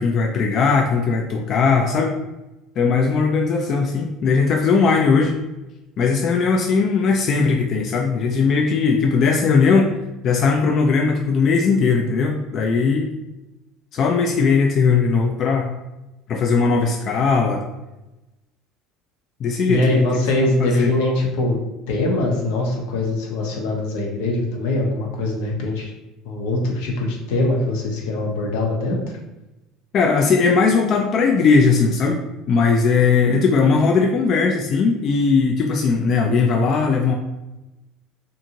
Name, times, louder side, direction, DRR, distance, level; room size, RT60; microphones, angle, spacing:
voice 1, 0.0-2.1 2.8-5.4 6.0-9.9 10.2-13.1 13.9-15.8 16.3-17.6 19.4-20.0 20.4-20.9 29.9-32.2 32.5-37.1, left 5 dB, 50° left, 2 dB, 0.3 m, -18 dB
voice 2, 19.7-21.6 21.9-25.9 26.2-29.2, left 2 dB, 80° left, 0 dB, 0.7 m, -22 dB
2.6 x 2.5 x 2.8 m, 0.98 s
supercardioid pair, 100°, 0 cm